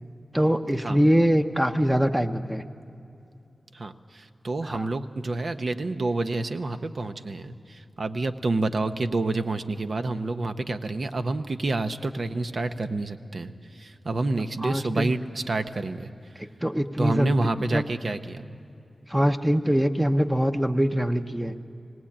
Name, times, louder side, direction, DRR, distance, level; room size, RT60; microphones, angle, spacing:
voice 1, 0.3-2.6 4.7-4.9 14.6-15.1 16.6-17.3 17.7-17.8 19.1-21.5, equal, 10° right, 5 dB, 0.9 m, -23 dB
voice 2, 3.7-16.1 17.0-18.4, right 2 dB, 65° right, 8 dB, 0.9 m, -28 dB
19.0 x 18.5 x 8.7 m, 2.6 s
cardioid pair, 45°, 0 cm